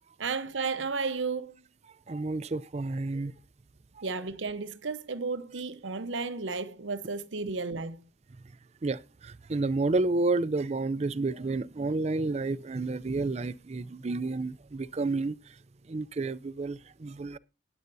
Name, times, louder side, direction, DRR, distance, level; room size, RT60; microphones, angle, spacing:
voice 1, 0.2-1.6 4.0-8.1, right 4 dB, 90° right, 0.9 m, -33 dB
voice 2, 2.1-3.3 8.8-15.4 15.9-17.4, right 3 dB, 35° right, 0.4 m, -30 dB
19.5 x 7.9 x 2.6 m
head